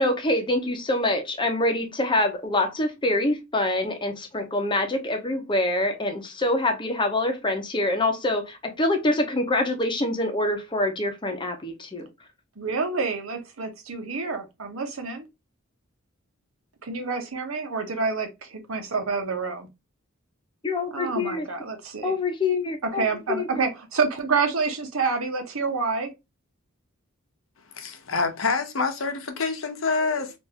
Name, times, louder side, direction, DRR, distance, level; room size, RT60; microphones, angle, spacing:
voice 1, 0.0-12.1 20.6-21.5 22.0-23.0 23.4-23.6, left 2 dB, 25° left, 0.8 m, -25 dB
voice 2, 12.6-15.2 16.8-19.7 20.9-22.1 22.8-26.1, right 4 dB, 85° right, 0.9 m, -28 dB
voice 3, 27.7-30.3, left 4 dB, 70° left, 0.8 m, -26 dB
3.5 x 2.6 x 2.8 m
head